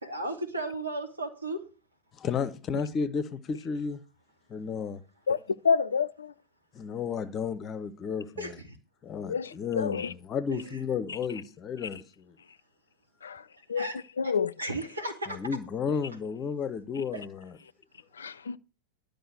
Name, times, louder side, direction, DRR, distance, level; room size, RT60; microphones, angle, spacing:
voice 1, 0.0-1.6 8.4-8.8 10.5-10.8 13.7-14.0 14.2-14.3 14.6-15.4 17.1-17.2, right 1 dB, 80° right, 2.5 m, -35 dB
voice 2, 2.2-4.0 4.5-5.0 6.7-8.3 9.0-12.3 15.3-17.5, left 6 dB, 30° left, 0.8 m, -32 dB
voice 3, 5.6-6.3 9.2-10.1 13.2-13.4 13.7-13.9 14.2-14.5 18.2-18.6, left 6 dB, 70° left, 0.4 m, -28 dB
11.5 x 5.1 x 7.7 m
figure-of-eight pair, 90°, 0 cm